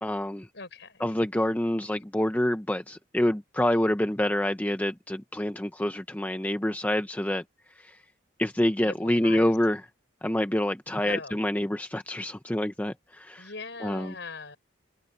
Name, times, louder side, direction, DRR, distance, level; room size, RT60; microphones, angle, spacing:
voice 1, 0.0-0.5 1.0-7.4 7.7-8.0 8.4-9.8 10.2-13.5 13.8-14.1, left 1 dB, 10° left, 0.6 m, -27 dB
voice 2, 0.5-1.0 8.8-9.6 11.0-11.4 13.4-14.6, left 4 dB, 65° left, 5.3 m, -40 dB
head